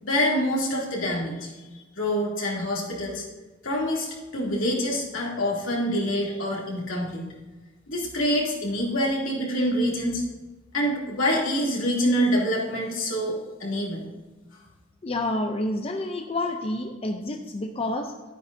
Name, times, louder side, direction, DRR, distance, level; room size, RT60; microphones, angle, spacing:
voice 1, 0.0-1.5 1.9-3.3 3.6-7.2 7.9-10.2 10.7-14.0, equal, 75° left, -4 dB, 2.7 m, -26 dB
voice 2, 15.0-18.1, left 1 dB, 30° left, 4 dB, 0.5 m, -29 dB
11.5 x 9.5 x 2.7 m, 1.2 s
head